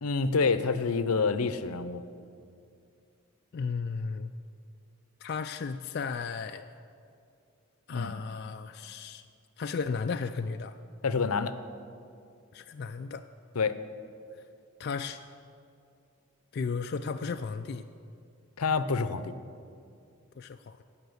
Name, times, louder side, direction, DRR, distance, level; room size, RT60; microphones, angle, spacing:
voice 1, 0.0-2.0 7.9-8.1 11.0-11.5 13.6-13.8 18.6-19.3, left 4 dB, 85° left, 12 dB, 0.6 m, -27 dB
voice 2, 3.5-4.3 5.2-6.7 7.9-9.2 9.6-10.8 12.5-13.2 14.8-15.2 16.5-17.8 20.4-20.8, left 5 dB, 45° left, 7 dB, 0.3 m, -34 dB
16.0 x 5.8 x 8.0 m, 2.4 s
head